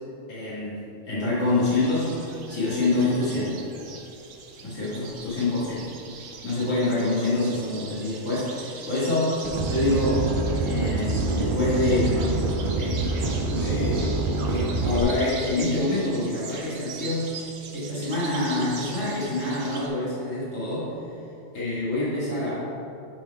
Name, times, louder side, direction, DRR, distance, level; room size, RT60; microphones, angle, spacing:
voice 1, 0.3-3.6 4.6-5.9 6.4-10.2 10.6-12.4 12.8-13.1 13.5-14.1 14.4-17.4 17.7-20.9 21.5-22.7, left 2 dB, 85° left, -10 dB, 2.2 m, -26 dB
sound 1, 1.5-19.9, right 5 dB, 75° right, 1.1 m, -42 dB
sound 2, 9.4-15.0, right 3 dB, 45° right, 0.9 m, -26 dB
10.5 x 3.9 x 4.7 m, 2.8 s
omnidirectional pair, 1.3 m